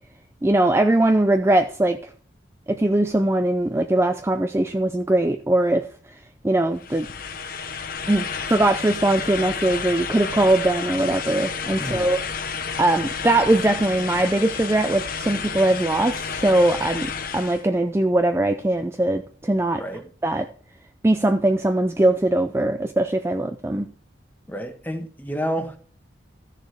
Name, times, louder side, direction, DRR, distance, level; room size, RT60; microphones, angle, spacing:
voice 1, 0.4-2.1 2.7-7.1 8.1-12.5 12.8-19.8 20.2-20.5 21.0-23.9, right 1 dB, 15° right, 0.4 m, -21 dB
sound 1, 6.8-17.6, left 6 dB, 45° left, 0.9 m, -31 dB
voice 2, 24.5-25.8, equal, 10° left, 1.2 m, -29 dB
13.5 x 6.6 x 4.7 m
head